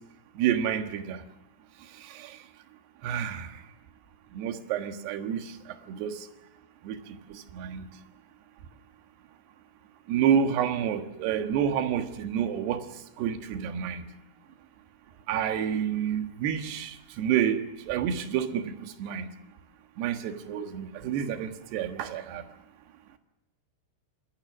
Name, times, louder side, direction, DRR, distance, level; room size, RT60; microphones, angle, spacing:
voice 1, 0.4-1.2 2.2-2.3 3.0-3.5 4.3-5.4 5.9-6.2 6.8-7.0 7.3-7.9 10.1-12.8 13.2-14.0 15.3-19.3 20.0-22.4, right 8 dB, 65° right, 3.0 m, -29 dB
27.0 x 21.5 x 6.2 m
omnidirectional pair, 5.9 m